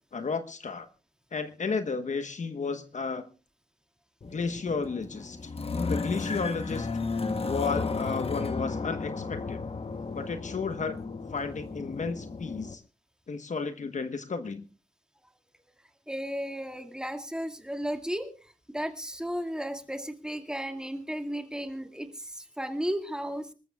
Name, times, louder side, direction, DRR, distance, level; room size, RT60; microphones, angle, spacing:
voice 1, 0.1-0.9 1.3-3.3 4.3-5.4 5.9-6.9 7.4-9.6 10.1-11.0 11.3-12.8 13.3-14.6, left 4 dB, 60° left, 9 dB, 1.2 m, -33 dB
sound 1, 4.2-12.7, left 4 dB, 45° left, 1.1 m, -34 dB
voice 2, 16.1-23.5, equal, 5° right, 5 dB, 2.1 m, -34 dB
26.0 x 13.5 x 2.4 m, 0.35 s
cardioid pair, 70°, 14 cm